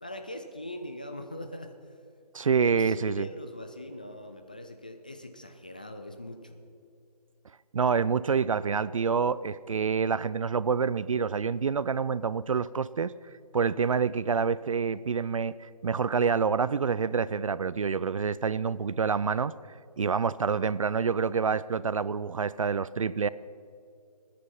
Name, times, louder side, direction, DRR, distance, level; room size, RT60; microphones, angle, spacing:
voice 1, 0.0-1.7 2.6-6.6, left 1 dB, 15° left, 6 dB, 0.3 m, -41 dB
voice 2, 2.3-3.3 7.7-13.1 13.5-19.5 20.0-23.3, right 6 dB, 55° right, 18 dB, 0.4 m, -27 dB
24.5 x 10.0 x 5.6 m, 2.4 s
figure-of-eight pair, 155°, 21 cm